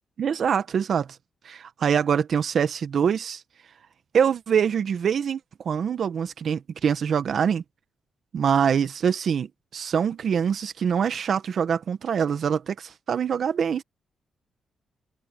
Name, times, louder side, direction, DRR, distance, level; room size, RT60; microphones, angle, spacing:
voice 1, 0.2-1.1 1.4-3.4 4.1-5.4 5.6-7.6 8.3-9.5 9.7-13.8, right 7 dB, 65° right, 1.5 m, -24 dB
supercardioid pair, 55°, 0 cm